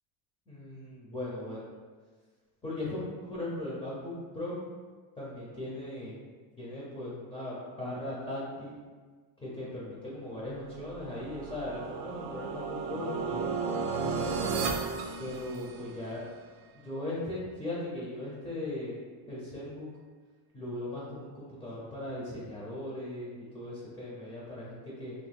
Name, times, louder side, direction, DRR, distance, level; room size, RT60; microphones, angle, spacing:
voice 1, 0.5-1.7 2.6-4.6 5.2-6.2 6.6-8.8 9.4-13.5 14.2-14.5 15.2-16.2 16.8-19.0 19.3-19.9 20.5-25.1, left 1 dB, 10° left, -6 dB, 0.5 m, -38 dB
sound 1, 10.9-16.1, right 5 dB, 70° right, 0.5 m, -34 dB
2.9 x 2.0 x 3.3 m, 1.5 s
cardioid pair, 130°, 49 cm